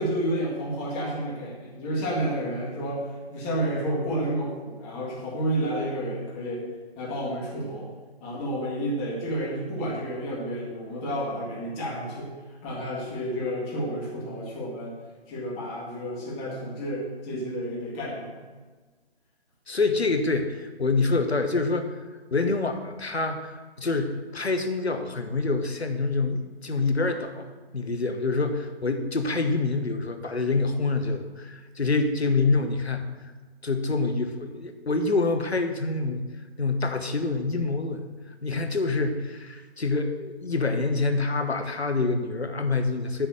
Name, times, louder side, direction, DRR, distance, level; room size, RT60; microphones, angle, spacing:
voice 1, 0.0-3.0 3.3-6.6 7.0-7.9 8.2-12.3 12.6-14.9 15.3-18.4, equal, 15° left, -6 dB, 2.2 m, -30 dB
voice 2, 19.7-22.0 22.3-33.1 33.6-36.2 36.6-38.0 38.4-43.3, left 3 dB, 80° left, 6 dB, 1.1 m, -26 dB
10.0 x 4.0 x 7.2 m, 1.4 s
figure-of-eight pair, 140°, 32 cm